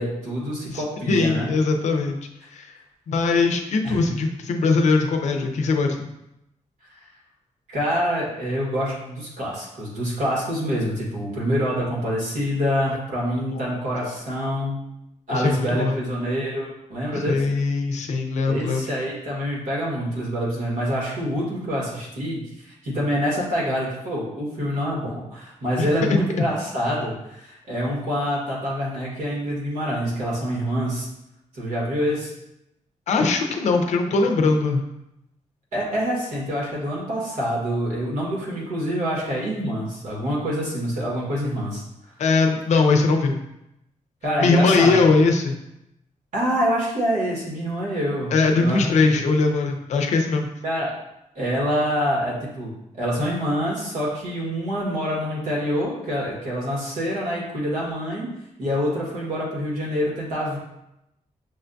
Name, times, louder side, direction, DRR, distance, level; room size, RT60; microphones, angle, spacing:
voice 1, 0.0-1.6 3.8-4.1 7.7-14.8 15.3-17.4 18.4-31.1 31.5-32.3 35.7-41.8 44.2-44.9 46.3-48.3 48.6-48.8 49.1-49.2 50.6-50.9 51.3-58.3 58.6-60.6, equal, 75° right, -4 dB, 1.4 m, -26 dB
voice 2, 0.7-2.2 2.5-2.7 3.1-6.1 15.3-16.0 17.1-18.8 25.8-26.2 33.1-34.8 42.2-43.4 44.4-45.6 48.3-50.5, left 3 dB, 65° left, 4 dB, 0.5 m, -21 dB
6.1 x 2.2 x 2.6 m, 0.86 s
wide cardioid pair, 155°, 13 cm